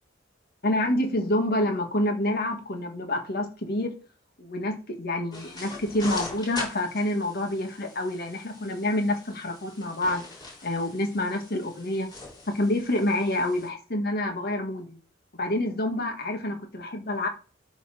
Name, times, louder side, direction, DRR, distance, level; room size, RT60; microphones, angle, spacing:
voice 1, 0.6-3.9 4.4-10.2 10.6-12.1 12.5-15.0 15.4-17.3, left 1 dB, 55° left, 1.7 m, -27 dB
sound 1, 5.3-13.7, left 3 dB, 20° left, 3.9 m, -42 dB
12.0 x 4.1 x 5.0 m
head